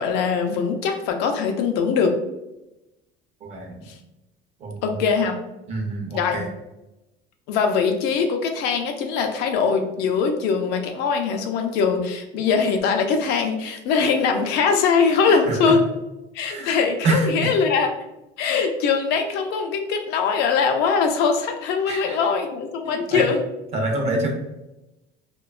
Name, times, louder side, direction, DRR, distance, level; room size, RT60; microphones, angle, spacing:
voice 1, 0.0-2.2 3.9-4.0 4.8-5.4 6.1-6.4 7.5-15.8 16.3-17.9 18.4-23.4, left 5 dB, 55° left, 4 dB, 0.4 m, -22 dB
voice 2, 3.4-3.9 4.6-4.8 5.7-6.5 15.3-15.7 16.4-16.7 17.0-17.5 21.9-22.2 22.8-23.2 23.7-24.3, right 2 dB, 35° right, 1 dB, 0.5 m, -26 dB
2.7 x 2.2 x 2.3 m, 0.94 s
cardioid pair, 170°, 20 cm